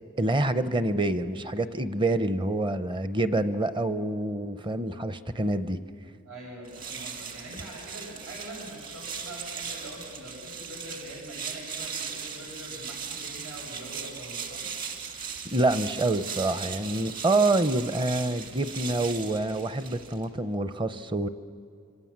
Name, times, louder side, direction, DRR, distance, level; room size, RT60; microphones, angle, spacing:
voice 1, 0.2-5.8 15.4-21.3, right 2 dB, 25° right, 12 dB, 0.8 m, -27 dB
voice 2, 6.2-14.6, right 1 dB, 85° right, -3 dB, 7.8 m, -43 dB
sound 1, 6.6-20.3, right 6 dB, 40° right, 2.4 m, -38 dB
26.5 x 25.0 x 7.4 m, 2.5 s
head